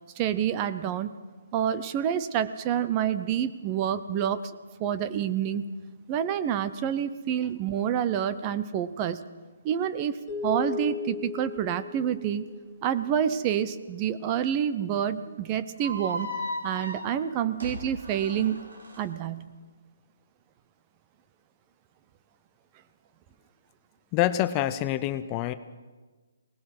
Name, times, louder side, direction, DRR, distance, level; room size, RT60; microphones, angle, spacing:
voice 1, 0.2-1.1 1.5-4.4 4.8-5.6 6.1-9.2 9.6-12.4 12.8-16.3 16.6-18.7 19.0-19.5, right 9 dB, 25° right, 13 dB, 0.7 m, -28 dB
sound 1, 10.3-12.8, left 7 dB, 5° right, 3.8 m, -36 dB
sound 2, 15.8-19.0, equal, 75° right, 5.3 m, -36 dB
voice 2, 24.1-25.5, left 13 dB, 20° left, 12 dB, 0.6 m, -26 dB
22.5 x 19.0 x 6.0 m, 1.3 s
hypercardioid pair, 160°, 0 cm